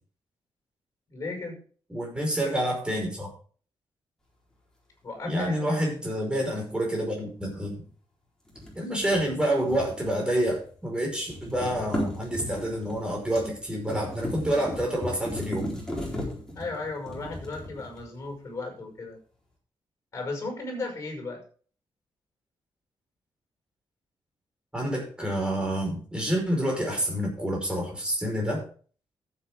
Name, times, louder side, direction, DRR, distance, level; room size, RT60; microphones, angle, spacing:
voice 1, 1.1-1.6 5.0-5.7 16.5-19.2 20.1-21.4, left 3 dB, 35° left, 3 dB, 5.8 m, -35 dB
voice 2, 1.9-3.3 5.2-7.8 8.7-15.7 24.7-28.6, right 1 dB, 10° right, 0 dB, 5.1 m, -28 dB
sound 1, 8.5-10.7 11.0-18.3, equal, 5° left, 4.1 m, -36 dB
14.0 x 8.4 x 3.7 m, 0.42 s
wide cardioid pair, 160°, 9 cm